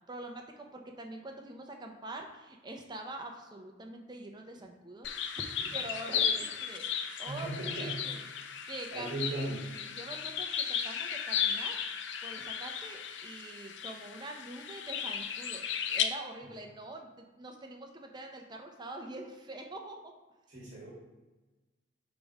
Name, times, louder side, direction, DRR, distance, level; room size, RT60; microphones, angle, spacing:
voice 1, 0.1-5.1 5.4-6.8 7.2-8.3 8.7-9.6 9.9-11.8 12.2-20.0, right 2 dB, 25° right, 3 dB, 0.6 m, -45 dB
sound 1, 5.0-16.0, left 8 dB, 70° left, 0.5 m, -35 dB
voice 2, 6.1-6.4 7.3-7.9 8.9-9.7 20.5-20.9, right 1 dB, 45° right, -6 dB, 1.5 m, -38 dB
5.2 x 3.5 x 5.2 m, 1.2 s
head